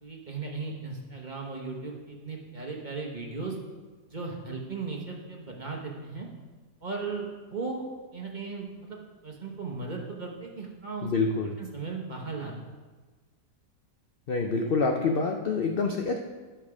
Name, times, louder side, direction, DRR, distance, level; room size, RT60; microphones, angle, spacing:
voice 1, 0.0-3.6 4.1-6.3 6.8-7.9 8.1-9.0 9.2-11.1 11.6-12.5, right 4 dB, 35° right, 0 dB, 1.0 m, -36 dB
voice 2, 11.0-11.5 14.3-16.2, left 4 dB, 65° left, 3 dB, 0.5 m, -26 dB
10.5 x 5.7 x 4.9 m, 1.3 s
omnidirectional pair, 1.7 m